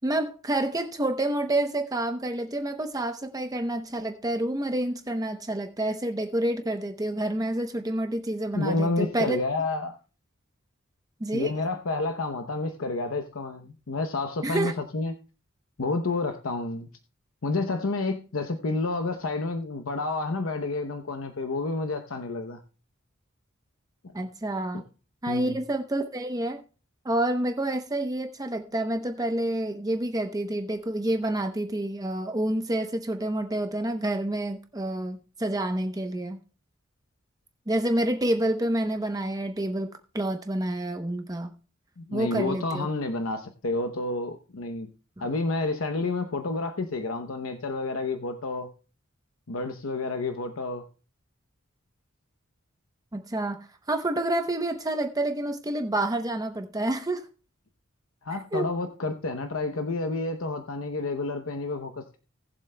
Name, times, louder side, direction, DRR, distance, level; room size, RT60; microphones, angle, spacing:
voice 1, 0.0-9.4 11.2-11.5 14.4-14.7 24.1-24.8 25.2-26.6 27.0-36.4 37.7-39.9 40.1-41.5 42.1-42.9 45.2-45.3 53.1-53.6 53.9-57.2 58.5-58.7, right 1 dB, 20° right, 6 dB, 0.7 m, -28 dB
voice 2, 8.5-10.0 11.3-15.1 15.8-16.9 17.4-22.6 24.2-24.3 24.7-24.8 25.3-25.6 42.0-44.9 45.2-48.7 49.5-50.8 58.2-62.2, left 3 dB, 85° left, 7 dB, 0.8 m, -30 dB
19.0 x 7.5 x 2.2 m, 0.36 s
head